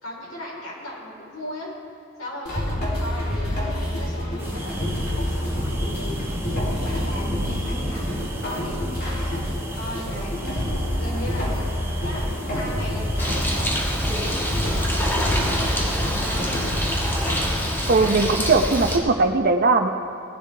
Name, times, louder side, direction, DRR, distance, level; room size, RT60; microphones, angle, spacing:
voice 1, 0.0-1.7 2.2-11.7 12.0-14.1 14.6-15.6 16.1-16.8, left 1 dB, 85° left, -4 dB, 3.9 m, -37 dB
sound 1, 2.5-18.4, left 1 dB, 55° left, 3.2 m, -28 dB
sound 2, 4.4-17.6, right 1 dB, 15° right, 1.3 m, -34 dB
Bird, 13.2-19.0, equal, 10° left, 1.6 m, -26 dB
voice 2, 17.9-19.9, right 3 dB, 50° right, 6 dB, 0.7 m, -19 dB
19.5 x 11.5 x 3.3 m, 2.5 s
head